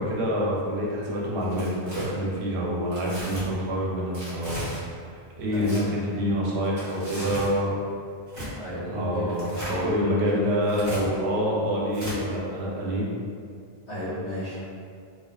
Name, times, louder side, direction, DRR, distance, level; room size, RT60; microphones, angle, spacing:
voice 1, 0.0-4.8 5.3-7.8 8.9-13.1, equal, 85° right, -4 dB, 0.8 m, -27 dB
Tearing, 1.4-2.1 2.9-3.4 4.1-4.8 5.5-5.8 6.6-7.5 8.3-8.5 9.3-9.8 10.6-11.0 11.9-12.2, right 1 dB, 50° right, 0.9 m, -37 dB
voice 2, 8.5-10.0 13.9-14.6, equal, 40° left, -12 dB, 0.8 m, -32 dB
2.5 x 2.2 x 2.2 m, 2.2 s
omnidirectional pair, 1.1 m